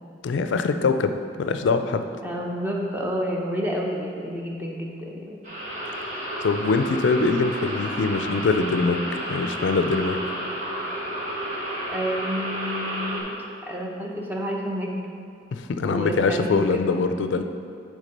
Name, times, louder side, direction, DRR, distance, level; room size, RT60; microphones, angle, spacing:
voice 1, 0.2-2.0 6.4-10.3 15.5-17.4, left 4 dB, 85° left, 8 dB, 0.4 m, -23 dB
voice 2, 2.2-5.4 11.9-13.3 13.7-14.9 15.9-17.0, equal, 10° right, -1 dB, 0.7 m, -29 dB
sound 1, 5.4-13.2, right 1 dB, 40° right, 1.6 m, -31 dB
8.3 x 3.6 x 5.2 m, 2.4 s
head